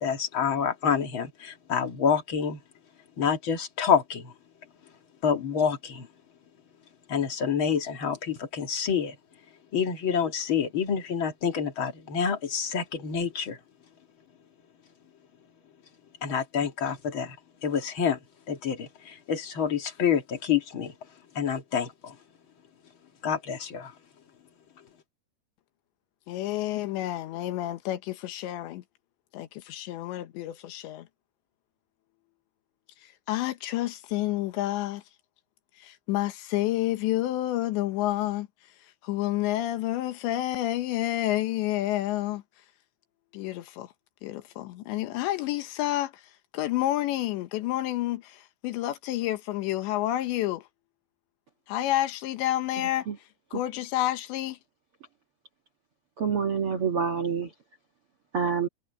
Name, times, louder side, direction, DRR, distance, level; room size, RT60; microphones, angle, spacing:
voice 1, 0.0-2.6 3.2-4.3 5.2-6.1 7.1-9.1 9.7-13.6 16.2-17.4 17.6-18.2 18.5-20.9 21.4-22.1 23.2-23.9, left 7 dB, 45° left, 1.8 m, -27 dB
voice 2, 26.3-28.8 29.3-31.1 33.0-35.0 35.8-38.5 39.0-42.4 43.3-43.9 44.2-50.7 51.7-53.1 53.5-54.6, left 14 dB, 90° left, 3.6 m, -29 dB
voice 3, 56.2-57.5 58.3-58.7, right 6 dB, 60° right, 1.5 m, -27 dB
omnidirectional pair, 5.0 m